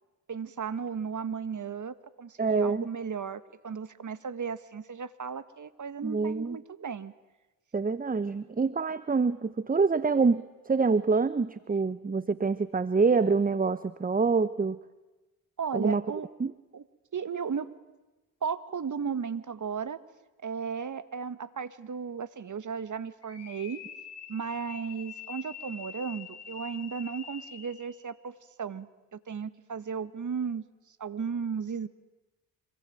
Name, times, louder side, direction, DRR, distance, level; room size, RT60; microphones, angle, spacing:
voice 1, 0.3-7.1 15.6-16.3 16.7-16.8 17.1-17.7 18.4-20.0 20.4-23.8 24.3-28.9 29.1-30.6 31.0-31.9, right 6 dB, 40° right, 13 dB, 1.8 m, -35 dB
voice 2, 2.4-2.9 6.0-6.6 7.7-14.8 15.7-16.0 16.4-16.5, right 4 dB, 20° right, 15 dB, 0.9 m, -26 dB
sound 1, 23.2-27.9, left 7 dB, 55° left, 5.2 m, -45 dB
26.0 x 23.5 x 9.2 m, 1.1 s
hypercardioid pair, 50°, 48 cm